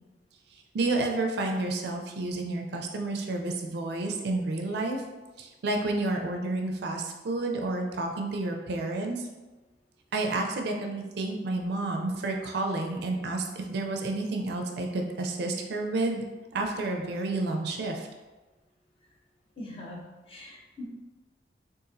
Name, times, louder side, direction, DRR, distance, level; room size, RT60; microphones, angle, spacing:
voice 1, 0.7-5.0 5.4-9.3 10.1-16.2 16.5-18.1, right 2 dB, 65° right, 2 dB, 0.4 m, -30 dB
voice 2, 19.6-20.0 20.3-20.8, left 1 dB, 30° left, -3 dB, 0.7 m, -41 dB
3.9 x 2.5 x 2.5 m, 1.2 s
head